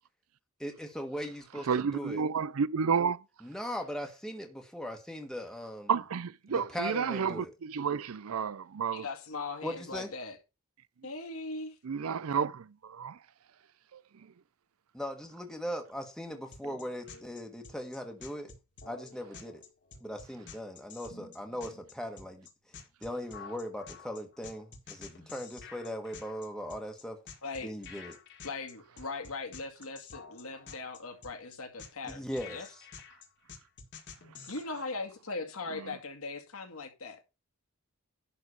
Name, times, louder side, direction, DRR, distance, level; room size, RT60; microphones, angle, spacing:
voice 1, 0.6-2.2 3.4-5.9 6.5-7.5 9.6-10.1 14.9-18.5 18.9-19.6 20.0-22.5 23.0-27.2 27.6-28.2 32.0-32.8, equal, 5° left, 1.4 m, -39 dB
voice 2, 1.7-3.2 5.9-9.0 11.8-13.2 13.9-14.0 35.7-35.8, right 6 dB, 75° right, 0.5 m, -31 dB
voice 3, 8.9-10.4 11.0-11.8 27.4-27.7 28.4-32.2 32.5-32.7 34.5-37.2, left 3 dB, 75° left, 2.2 m, -39 dB
sound 1, 16.5-34.6, left 5 dB, 55° left, 1.9 m, -49 dB
11.0 x 3.8 x 6.8 m
head